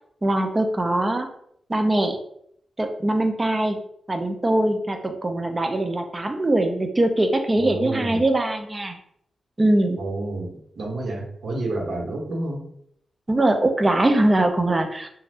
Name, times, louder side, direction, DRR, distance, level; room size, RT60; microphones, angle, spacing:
voice 1, 0.2-1.3 1.7-2.2 2.8-3.8 4.1-9.0 9.6-10.0 13.3-15.1, right 1 dB, 25° right, 5 dB, 0.4 m, -22 dB
voice 2, 7.6-8.2 10.0-12.6, right 2 dB, 65° right, -1 dB, 0.9 m, -30 dB
2.5 x 2.1 x 3.4 m, 0.70 s
wide cardioid pair, 105°, 0 cm